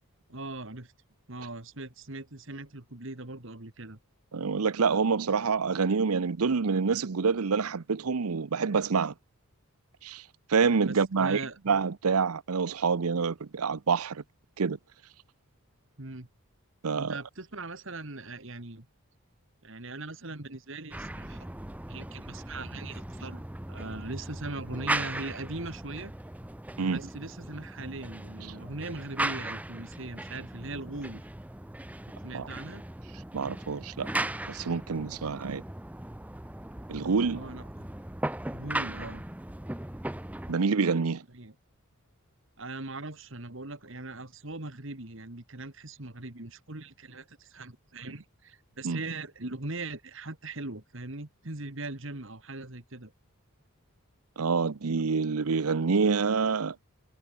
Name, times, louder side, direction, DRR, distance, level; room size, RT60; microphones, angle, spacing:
voice 1, 0.3-0.9 1.3-4.0 10.9-11.6 16.0-16.3 17.0-18.9 19.6-21.5 21.9-23.4 23.7-26.1 26.8-31.3 32.2-32.8 37.3-37.7 38.5-39.2 41.3-41.6 42.6-53.1, right 2 dB, 60° right, 2.1 m, -40 dB
voice 2, 4.3-9.1 10.0-10.2 10.5-14.2 14.6-14.8 16.8-17.2 26.8-27.0 32.3-32.5 33.3-34.1 34.5-35.6 36.9-37.4 40.5-41.2 48.8-49.0 54.4-56.7, right 5 dB, 85° right, 0.7 m, -27 dB
sound 1, 20.9-40.5, right 1 dB, 5° right, 0.6 m, -38 dB
head